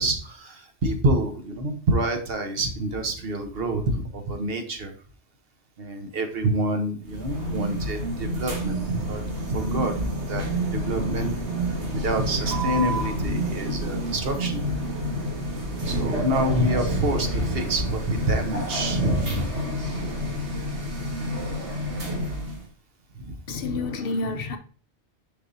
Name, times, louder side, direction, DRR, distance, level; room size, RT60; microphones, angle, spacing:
voice 1, 0.0-4.9 5.8-9.2 9.5-11.7 11.9-14.7 15.8-19.6 23.1-23.3 23.7-23.8, right 1 dB, 60° right, 1.1 m, -27 dB
sound 1, 7.0-22.7, right 1 dB, 75° right, 1.7 m, -29 dB
voice 2, 23.5-24.6, left 3 dB, 60° left, 0.8 m, -29 dB
6.8 x 5.4 x 2.7 m
omnidirectional pair, 1.2 m